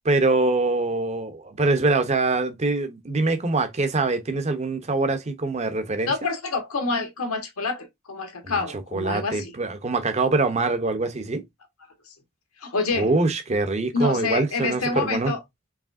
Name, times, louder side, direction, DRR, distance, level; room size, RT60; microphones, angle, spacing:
voice 1, 0.0-6.1 8.4-8.6 8.9-11.4 12.9-15.3, right 3 dB, 30° right, 0.7 m, -24 dB
voice 2, 6.0-9.5 12.6-13.1 13.9-15.4, left 3 dB, 75° left, 1.3 m, -27 dB
4.8 x 3.2 x 2.5 m
head